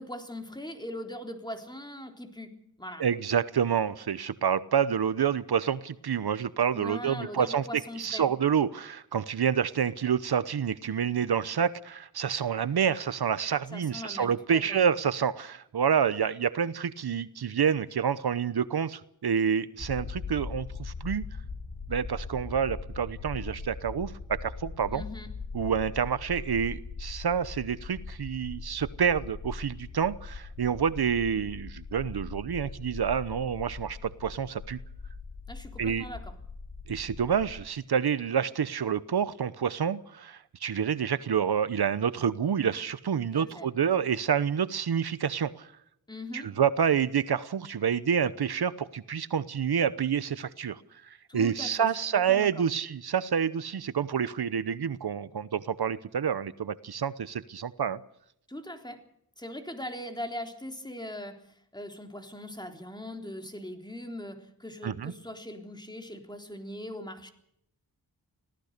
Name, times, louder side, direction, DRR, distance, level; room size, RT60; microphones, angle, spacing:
voice 1, 0.0-3.1 6.7-8.3 13.7-14.8 24.9-25.3 35.5-36.4 43.3-43.7 46.1-46.6 51.3-52.6 58.5-59.1 59.4-67.3, left 1 dB, 10° left, 5 dB, 3.7 m, -41 dB
voice 2, 3.0-21.2 21.9-25.0 25.5-34.8 35.8-36.1 36.9-45.7 46.3-58.0 64.8-65.1, right 7 dB, 75° right, 15 dB, 0.9 m, -28 dB
sound 1, 19.8-37.6, left 4 dB, 80° left, 3.3 m, -41 dB
25.5 x 17.5 x 6.7 m, 0.74 s
wide cardioid pair, 80°, 39 cm